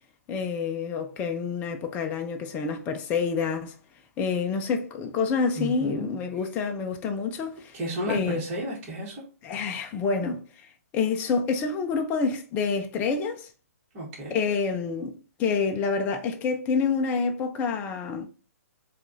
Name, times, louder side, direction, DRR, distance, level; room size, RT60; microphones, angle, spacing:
voice 1, 0.3-3.7 4.2-7.8 8.1-8.4 9.4-10.7 10.9-13.5 14.3-18.3, left 5 dB, 20° left, 0.4 m, -28 dB
voice 2, 5.6-6.1 7.7-9.2 13.9-14.4, equal, 25° right, 1.3 m, -32 dB
4.6 x 2.3 x 2.6 m
hypercardioid pair, 135°, 8 cm